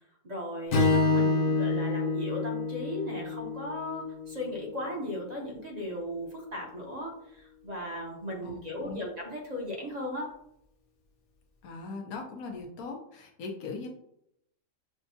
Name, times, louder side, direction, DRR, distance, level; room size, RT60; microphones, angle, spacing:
voice 1, 0.2-10.3, equal, 35° right, -1 dB, 0.8 m, -37 dB
Strum, 0.7-5.0, left 3 dB, 60° left, 1.0 m, -28 dB
voice 2, 8.4-9.0 11.6-13.9, left 3 dB, 90° left, 1 dB, 1.3 m, -40 dB
6.1 x 2.2 x 2.7 m, 0.75 s
omnidirectional pair, 1.5 m